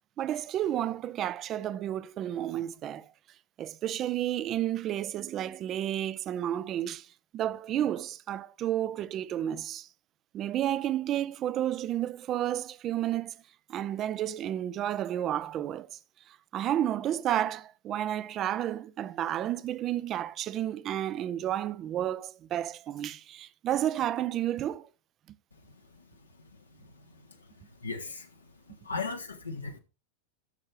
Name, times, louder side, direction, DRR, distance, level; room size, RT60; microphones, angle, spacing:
voice 1, 0.2-3.1 3.6-7.1 7.3-9.9 10.3-13.3 13.7-16.0 16.5-24.9, right 11 dB, 30° right, 0.5 m, -31 dB
voice 2, 26.7-28.3 28.7-29.8, left 4 dB, 80° left, 1.3 m, -39 dB
13.0 x 6.5 x 3.3 m
figure-of-eight pair, 90°, 0 cm